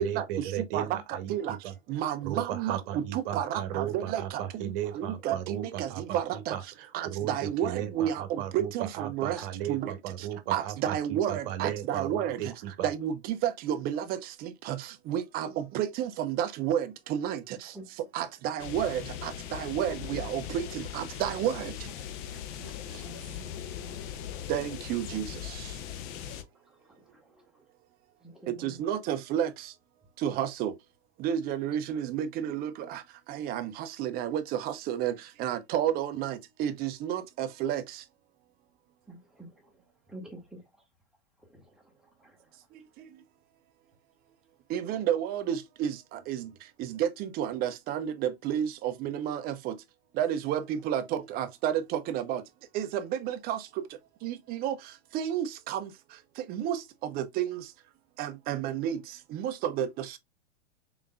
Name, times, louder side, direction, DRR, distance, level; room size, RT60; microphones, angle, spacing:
voice 1, 0.0-1.7 2.2-12.9, right 11 dB, 50° right, 1.0 m, -36 dB
voice 2, 0.7-1.6 1.9-6.6 6.9-9.4 9.7-9.9 10.5-12.4 12.8-14.8 15.1-17.4 18.1-21.7 24.5-25.3 28.6-29.5 30.2-30.7 31.2-33.0 33.3-35.1 35.4-37.8 44.7-46.0 46.3-46.4 46.8-49.7 50.2-52.4 52.7-53.6 54.2-54.7 55.1-55.9 56.5-56.8 57.1-57.6 58.2-59.0 59.3-60.2, right 10 dB, 25° right, 0.5 m, -31 dB
sound 1, 18.6-26.4, left 10 dB, 45° left, 0.7 m, -39 dB
voice 3, 22.6-24.0 25.1-25.2 26.7-26.8 27.4-27.5 28.2-28.8 39.1-39.7 40.1-40.6 41.5-41.8 42.2-42.4, right 1 dB, ahead, 1.2 m, -48 dB
3.8 x 3.6 x 2.2 m
hypercardioid pair, 115°, 35 cm